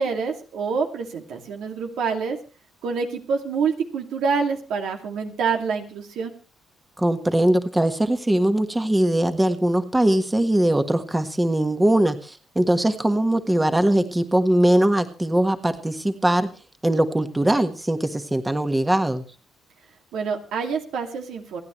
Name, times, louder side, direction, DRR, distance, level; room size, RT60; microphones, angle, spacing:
voice 1, 0.0-2.4 2.8-6.3 20.1-21.6, right 5 dB, 80° right, 3 dB, 2.4 m, -26 dB
voice 2, 7.0-16.5 16.8-19.2, right 1 dB, 15° right, 7 dB, 1.5 m, -21 dB
28.5 x 9.7 x 3.2 m, 0.35 s
cardioid pair, 90°, 0 cm